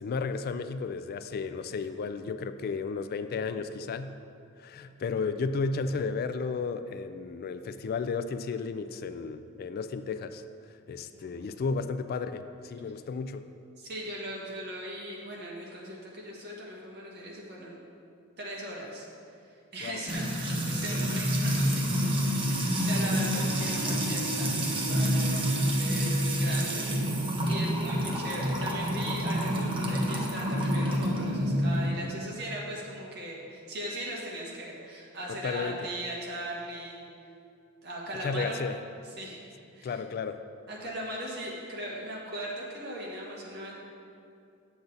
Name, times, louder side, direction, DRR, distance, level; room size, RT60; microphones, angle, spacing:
voice 1, 0.0-4.1 4.6-10.4 10.9-13.5 19.8-20.0 35.3-35.9 38.2-38.8 39.8-40.4, left 4 dB, 45° left, 10 dB, 0.3 m, -33 dB
voice 2, 11.1-11.5 13.8-17.8 18.4-19.1 19.7-37.0 37.8-38.6 39.2-39.4 39.7-40.0 40.7-43.7, right 1 dB, 50° right, -4 dB, 1.8 m, -39 dB
Music / Water tap faucet / Trickle dribble, 20.1-31.9, equal, 25° right, 1.0 m, -28 dB
9.2 x 7.0 x 3.9 m, 2.5 s
head